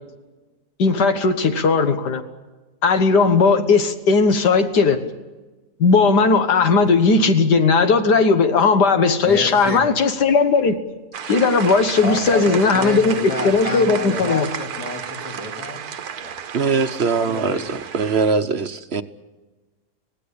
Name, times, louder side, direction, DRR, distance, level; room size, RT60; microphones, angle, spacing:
voice 1, 0.8-2.2 2.8-5.0 5.8-10.8 11.3-14.5, left 4 dB, 85° left, 6 dB, 2.0 m, -17 dB
voice 2, 9.2-9.9 12.0-15.8 16.2-16.4 16.7-16.8 17.2-17.8, left 2 dB, 50° left, 0 dB, 3.7 m, -30 dB
sound 1, 11.1-18.3, right 8 dB, 70° right, 1.4 m, -32 dB
voice 3, 16.5-19.0, right 5 dB, 45° right, 9 dB, 1.1 m, -21 dB
26.0 x 18.0 x 8.7 m, 1.2 s
omnidirectional pair, 1.7 m